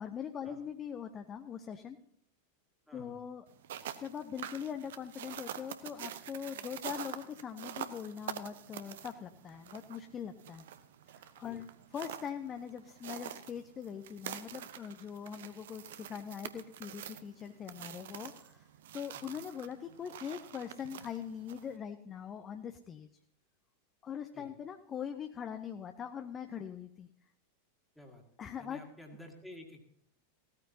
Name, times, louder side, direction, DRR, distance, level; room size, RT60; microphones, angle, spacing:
voice 1, 0.0-2.0 2.9-3.5 4.0-10.7 11.1-18.7 18.9-23.1 24.0-27.1 28.4-28.8, left 8 dB, 25° left, 8 dB, 0.7 m, -42 dB
voice 2, 2.9-3.2 11.4-11.6 19.3-19.4 24.3-24.5 28.0-28.2 28.6-29.9, left 1 dB, ahead, 1 dB, 2.0 m, -52 dB
sound 1, 3.5-21.8, right 10 dB, 55° right, 0.8 m, -46 dB
16.5 x 13.5 x 2.8 m, 0.71 s
figure-of-eight pair, 90°, 0 cm